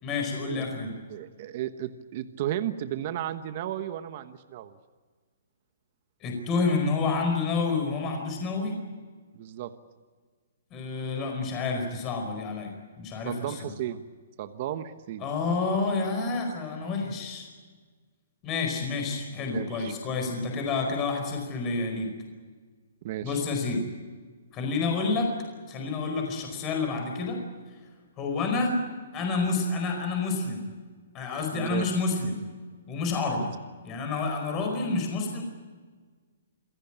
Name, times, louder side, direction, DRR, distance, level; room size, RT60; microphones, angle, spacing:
voice 1, 0.0-0.9 6.2-8.8 10.7-12.7 13.0-13.7 15.2-17.5 18.4-22.1 23.2-23.8 24.5-25.3 25.7-27.4 28.2-28.8 29.1-30.7 31.1-32.5 32.9-33.5 33.8-35.4, left 4 dB, 20° left, 3 dB, 4.9 m, -29 dB
voice 2, 0.5-4.8 9.3-9.7 13.2-14.0 14.4-15.2 19.5-19.9 23.0-23.4 31.5-31.8 33.4-33.5, right 12 dB, 35° right, 10 dB, 1.2 m, -34 dB
27.0 x 17.0 x 8.9 m, 1.5 s
hypercardioid pair, 170°, 0 cm